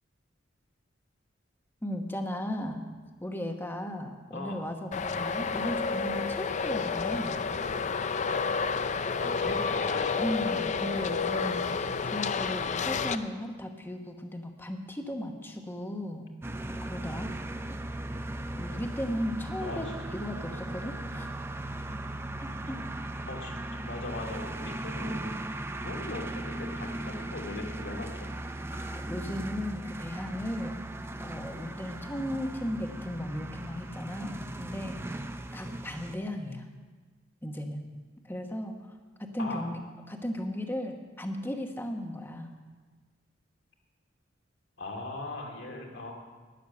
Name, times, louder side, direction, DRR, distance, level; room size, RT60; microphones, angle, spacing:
voice 1, 1.8-2.8 3.2-7.4 10.2-16.3 16.8-17.3 18.6-21.3 22.4-22.8 28.9-30.8 31.2-36.7 37.4-37.9 38.2-38.9 39.2-39.8 40.1-42.5, left 1 dB, 10° left, 4 dB, 1.1 m, -36 dB
Traffic noise roadway noise, 4.9-13.2, left 5 dB, 40° left, 0.5 m, -30 dB
voice 2, 9.2-10.1 19.6-19.8 23.3-25.3 25.7-28.3 28.7-28.9 39.4-39.7 44.8-46.1, left 2 dB, 65° left, 0 dB, 2.4 m, -39 dB
sound 1, 16.4-36.2, right 1 dB, 15° right, 0.5 m, -38 dB
12.0 x 10.0 x 6.7 m, 1.4 s
head